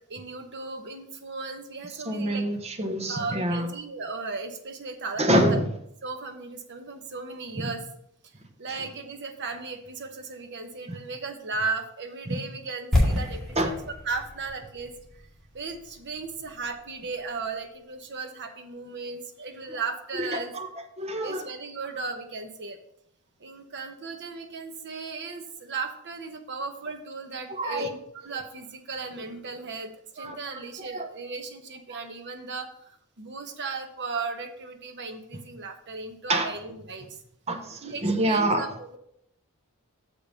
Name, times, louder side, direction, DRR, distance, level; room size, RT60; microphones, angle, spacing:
voice 1, 0.1-2.5 3.1-5.6 6.0-7.8 8.6-13.7 14.0-14.9 15.5-20.5 21.2-22.8 23.4-37.2 37.8-39.0, right 4 dB, 55° right, 6 dB, 1.0 m, -36 dB
voice 2, 2.1-3.7 5.2-5.6 7.6-7.7 12.3-12.4 13.6-13.7 20.2-20.7 21.0-21.4 27.6-27.9 30.2-31.1 36.3-36.5 37.5-38.7, right 1 dB, 30° right, 4 dB, 1.0 m, -26 dB
sound 1, 12.9-16.9 17.1-17.2, left 1 dB, 5° left, 2.1 m, -29 dB
6.7 x 5.3 x 5.6 m, 0.73 s
head